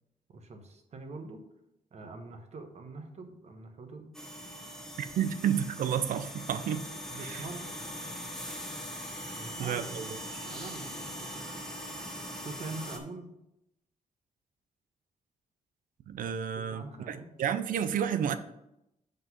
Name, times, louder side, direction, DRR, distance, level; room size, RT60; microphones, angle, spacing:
voice 1, 0.3-1.4 1.9-4.1 7.1-7.8 9.3-9.9 10.4-11.6 12.4-13.3 16.7-17.3, right 3 dB, 55° right, 6 dB, 1.1 m, -44 dB
sound 1, 4.1-13.0, equal, 5° left, 1.1 m, -41 dB
voice 2, 5.0-6.9 7.2-7.4 9.6-10.1 16.1-18.4, right 8 dB, 85° right, 10 dB, 0.5 m, -31 dB
6.0 x 5.3 x 5.4 m, 0.85 s
wide cardioid pair, 130°, 14 cm